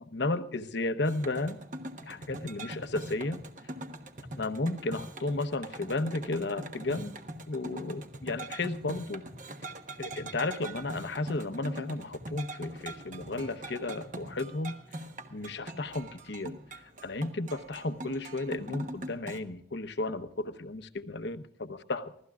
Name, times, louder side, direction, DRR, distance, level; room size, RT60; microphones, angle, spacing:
voice 1, 0.0-1.6 2.0-3.4 4.3-7.2 7.5-9.2 10.0-14.8 15.3-22.1, left 2 dB, 60° left, 10 dB, 0.9 m, -33 dB
sound 1, 1.0-19.4, right 1 dB, 40° right, 1.2 m, -42 dB
24.5 x 16.5 x 2.4 m, 0.73 s
head